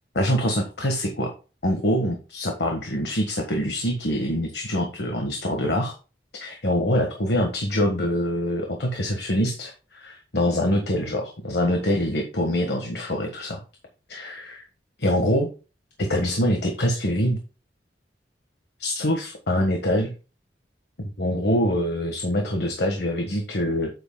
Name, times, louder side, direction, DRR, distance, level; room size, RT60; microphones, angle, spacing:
voice 1, 0.1-1.3 1.6-6.0 6.3-13.6 14.1-14.6 15.0-15.5 16.0-17.4 18.8-20.1 21.2-23.9, equal, 65° left, 3 dB, 1.4 m, -24 dB
9.4 x 8.1 x 2.2 m, 0.32 s
head